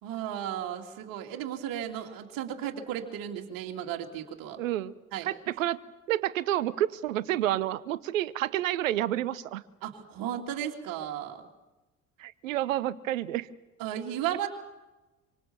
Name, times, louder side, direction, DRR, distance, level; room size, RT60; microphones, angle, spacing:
voice 1, 0.0-4.6 5.1-5.3 9.8-11.4 13.8-14.5, right 10 dB, 55° right, 1 dB, 2.8 m, -34 dB
voice 2, 4.6-4.9 5.2-5.8 6.1-9.6 12.2-13.5, right 13 dB, 75° right, 18 dB, 0.9 m, -29 dB
26.0 x 25.5 x 7.2 m, 1.1 s
figure-of-eight pair, 55°, 40 cm